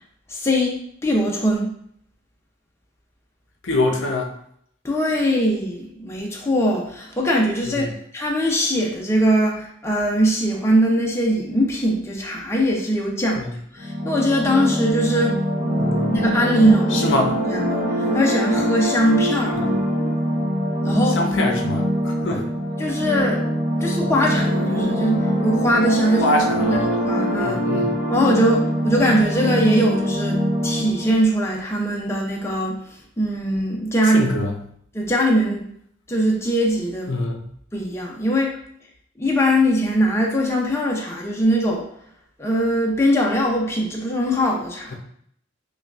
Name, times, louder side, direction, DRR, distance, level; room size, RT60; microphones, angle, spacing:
voice 1, 0.3-1.7 4.8-7.9 8.1-13.4 13.7-15.4 16.1-17.2 17.5-17.8 18.1-19.6 20.8-21.2 22.3-22.4 22.8-23.5 23.8-26.4 26.7-27.7 28.1-32.8 33.2-34.3 34.9-35.6 36.1-37.2 37.7-38.6 39.2-41.9 42.4-45.0, equal, 15° left, -2 dB, 0.5 m, -21 dB
voice 2, 3.6-4.3 7.7-7.9 13.3-13.5 15.8-16.1 16.9-17.4 19.5-19.8 21.1-22.5 26.2-27.0 27.4-27.9 34.1-34.5 37.1-37.4, left 1 dB, 70° left, 2 dB, 0.6 m, -24 dB
sound 1, 13.8-31.1, equal, 35° right, 1.3 m, -23 dB
5.5 x 2.3 x 2.4 m, 0.68 s
head